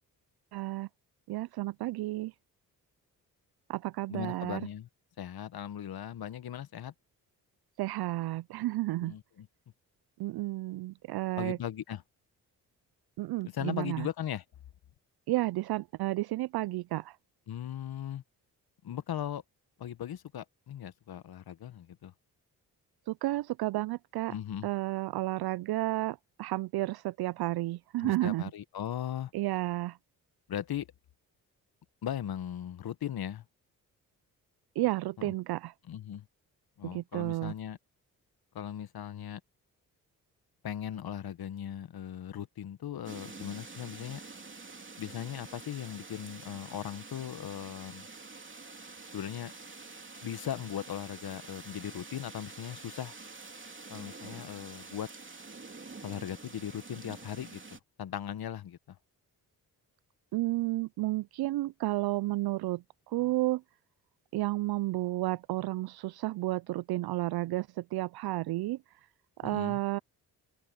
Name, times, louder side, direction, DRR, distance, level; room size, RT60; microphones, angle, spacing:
voice 1, 0.5-0.9 1.3-2.3 3.7-4.6 7.8-9.1 10.2-11.6 13.2-14.1 15.3-17.2 23.1-24.3 24.6-28.5 29.3-30.0 34.8-35.7 36.8-37.5 60.3-63.6 64.3-68.8 69.4-70.0, right 18 dB, 65° right, 0.5 m, -32 dB
voice 2, 4.1-4.9 5.2-6.9 9.0-9.5 11.4-12.0 13.5-14.4 17.5-18.2 18.8-19.4 19.8-22.1 24.3-24.7 28.0-29.3 30.5-30.9 32.0-33.4 35.2-35.3 35.9-36.2 36.8-37.8 38.5-39.4 40.6-44.2 45.0-48.0 49.1-49.5 50.2-53.2 53.9-55.1 56.0-57.6 58.0-59.0 69.4-69.8, left 10 dB, 60° left, 1.3 m, -38 dB
sound 1, 43.0-57.8, right 3 dB, 30° right, 3.1 m, -47 dB
open air
supercardioid pair, 50°, 41 cm